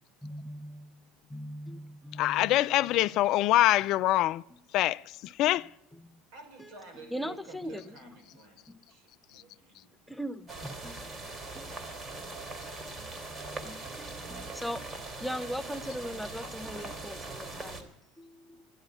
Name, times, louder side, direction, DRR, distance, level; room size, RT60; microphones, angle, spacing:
voice 1, 0.2-1.0 1.3-2.6 5.9-6.2 6.6-6.7 7.1-8.1 8.7-8.8 10.1-11.1 11.5-11.7 13.0-18.7, equal, ahead, 0.7 m, -40 dB
voice 2, 2.2-4.4 4.7-5.7, left 15 dB, 60° left, 0.4 m, -25 dB
voice 3, 6.3-10.2 11.7-12.5, right 3 dB, 75° right, 5.1 m, -52 dB
sound 1, 10.5-17.8, right 3 dB, 30° right, 3.0 m, -41 dB
12.0 x 11.5 x 7.9 m
supercardioid pair, 95°, 0 cm